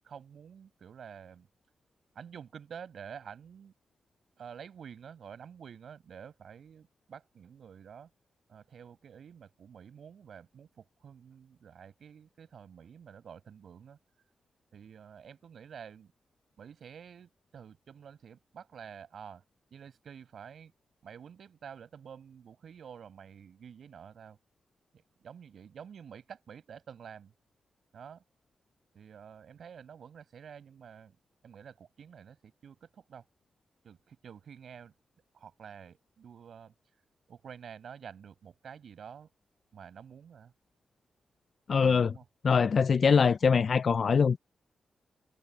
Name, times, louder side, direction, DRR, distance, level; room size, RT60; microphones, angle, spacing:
voice 1, 0.0-1.5 2.1-3.7 4.4-8.1 8.5-14.0 14.7-16.1 16.6-19.4 19.7-20.7 21.0-24.4 24.9-27.3 27.9-28.2 28.9-31.2 31.4-33.2 33.8-34.9 35.3-36.7 37.3-39.3 39.7-40.5 42.1-42.3, right 7 dB, 75° right, 5.6 m, -49 dB
voice 2, 41.7-42.1 42.4-44.4, left 6 dB, 55° left, 0.3 m, -23 dB
cardioid pair, 90°, 0 cm